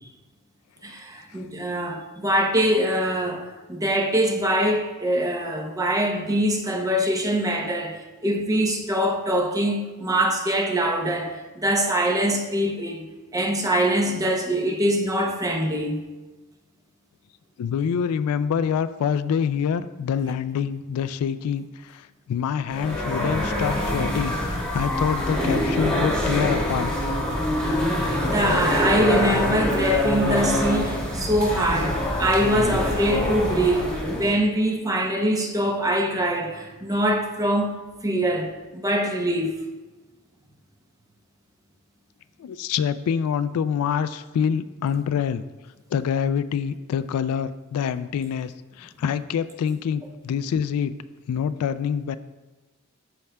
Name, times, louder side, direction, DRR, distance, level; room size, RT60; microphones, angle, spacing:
voice 1, 0.8-13.1 13.3-16.0 28.0-39.5, equal, 15° right, 0.6 m, -23 dB
voice 2, 17.6-26.9 42.4-45.4 45.9-48.5 48.8-50.9 51.3-52.2, left 7 dB, 80° left, 0.3 m, -26 dB
sound 1, 22.7-34.3, left 1 dB, 5° left, 1.4 m, -25 dB
12.5 x 4.7 x 2.2 m
head